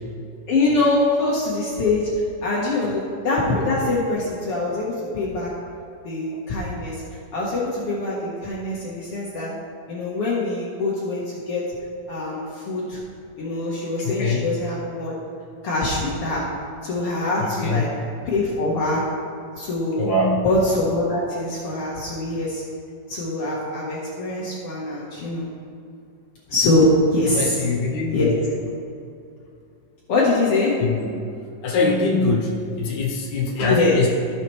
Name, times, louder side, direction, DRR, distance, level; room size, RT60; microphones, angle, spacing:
voice 1, 0.5-2.1 2.4-5.5 6.0-7.0 7.3-9.5 9.9-11.6 12.1-13.0 13.4-15.1 15.6-16.4 16.8-17.9 18.2-19.0 19.6-20.1 20.4-22.6 23.1-25.5 26.5-27.6 28.1-28.3 30.1-30.7 33.6-34.0, left 2 dB, 85° left, -5 dB, 1.2 m, -23 dB
voice 2, 14.1-14.5 17.4-17.8 20.0-20.5 27.3-28.4 30.8-31.1 31.6-34.1, left 3 dB, 70° left, -2 dB, 2.0 m, -23 dB
15.5 x 5.7 x 3.1 m, 2.5 s
omnidirectional pair, 4.3 m